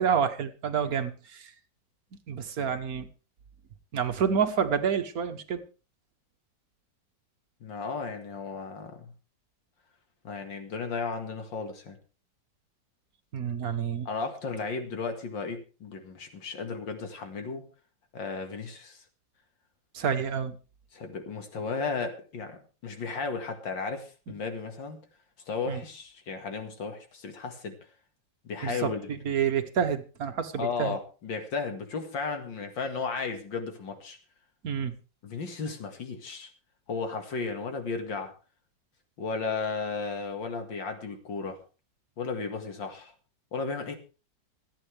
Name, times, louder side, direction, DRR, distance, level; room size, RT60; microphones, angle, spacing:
voice 1, 0.0-1.5 2.3-3.1 3.9-5.6 13.3-14.1 19.9-20.5 25.7-25.8 28.6-28.9 29.2-31.0 34.6-34.9, right 7 dB, 55° right, 9 dB, 1.5 m, -28 dB
voice 2, 7.6-9.1 10.2-12.0 14.1-17.7 18.1-19.0 20.9-25.0 25.5-27.7 28.4-29.1 30.6-34.2 35.2-36.5 36.9-38.3 39.2-41.6 42.2-43.1 43.5-44.0, left 4 dB, 90° left, 6 dB, 2.6 m, -34 dB
26.0 x 8.9 x 3.4 m, 0.34 s
omnidirectional pair, 2.0 m